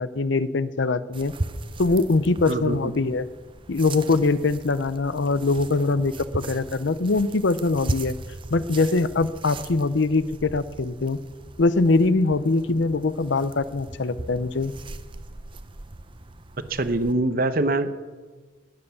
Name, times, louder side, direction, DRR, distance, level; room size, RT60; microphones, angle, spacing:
voice 1, 0.0-1.3 1.8-3.3 3.7-8.2 8.5-11.2 11.6-14.7, left 3 dB, 75° left, 15 dB, 0.7 m, -22 dB
sound 1, 1.1-17.1, right 2 dB, 25° right, 0.6 m, -38 dB
voice 2, 2.5-2.9 16.7-17.9, right 2 dB, 50° right, 11 dB, 0.9 m, -24 dB
19.5 x 7.8 x 7.0 m, 1.4 s
head